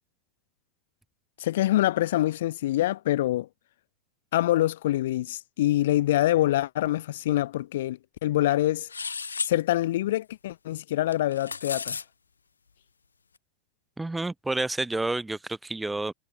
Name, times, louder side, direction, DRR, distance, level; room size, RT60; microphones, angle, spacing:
voice 1, 1.4-3.5 4.3-8.9 9.4-12.0, left 14 dB, 55° left, 1.4 m, -25 dB
sound 1, 8.9-9.5 11.1-12.0, left 5 dB, 75° left, 1.9 m, -33 dB
voice 2, 14.0-16.1, right 2 dB, 5° right, 4.7 m, -29 dB
figure-of-eight pair, 90°, 0 cm